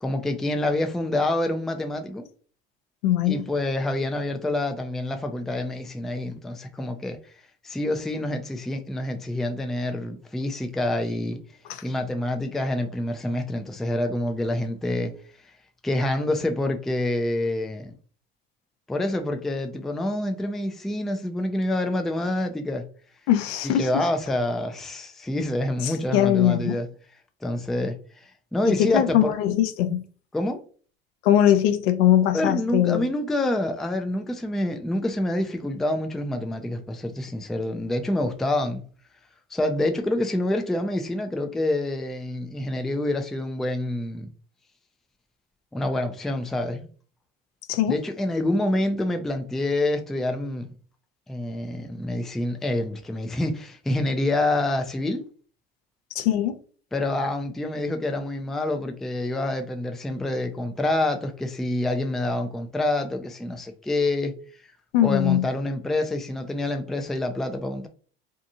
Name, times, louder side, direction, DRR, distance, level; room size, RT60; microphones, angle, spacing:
voice 1, 0.0-2.2 3.3-7.2 7.6-11.4 11.8-15.1 15.8-17.9 18.9-22.8 23.8-26.9 27.4-28.0 28.5-29.3 30.3-30.6 32.3-38.8 39.5-44.3 45.7-46.9 47.9-50.7 51.3-55.2 56.9-64.3 65.0-67.9, left 1 dB, ahead, 0.3 m, -27 dB
voice 2, 3.0-3.4 11.7-11.8 23.3-23.9 25.8-26.8 28.6-30.0 31.2-33.1 47.7-48.0 56.2-56.6 64.9-65.5, left 11 dB, 75° left, 0.5 m, -21 dB
2.7 x 2.4 x 2.6 m
hypercardioid pair, 80°, 31 cm